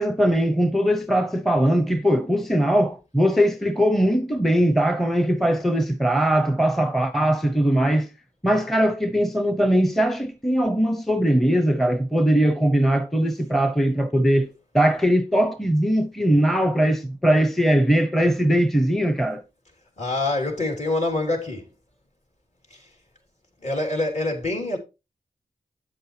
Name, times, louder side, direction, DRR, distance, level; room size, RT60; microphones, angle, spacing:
voice 1, 0.0-8.1 8.4-19.4, equal, ahead, 0.9 m, -20 dB
voice 2, 20.0-21.7 22.7-22.9 23.6-24.8, left 2 dB, 40° left, 3.6 m, -25 dB
9.0 x 7.7 x 3.3 m
cardioid pair, 40°, 17 cm